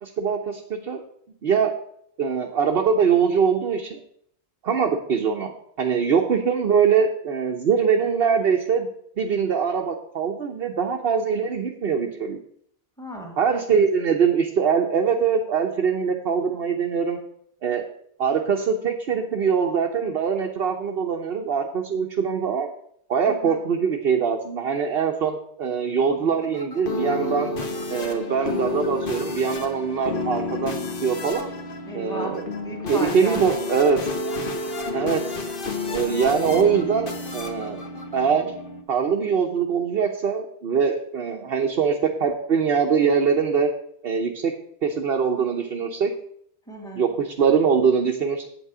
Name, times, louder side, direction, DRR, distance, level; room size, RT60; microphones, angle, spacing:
voice 1, 0.0-1.0 1.4-1.7 2.2-4.0 4.6-5.5 5.8-8.9 9.2-12.4 13.4-17.2 17.6-17.9 18.2-22.7 23.1-27.5 27.9-31.5 31.9-32.5 32.9-34.0 34.9-35.2 35.9-37.8 38.1-38.5 38.9-43.7 44.0-44.5 44.8-46.1 47.0-48.4, right 6 dB, 65° right, 1 dB, 1.1 m, -22 dB
voice 2, 13.0-13.4 23.3-23.6 31.9-33.4 46.7-47.1, equal, 5° left, -1 dB, 2.0 m, -34 dB
sound 1, 26.1-38.8, left 2 dB, 55° left, 1.3 m, -30 dB
8.2 x 8.1 x 4.9 m, 0.67 s
omnidirectional pair, 1.1 m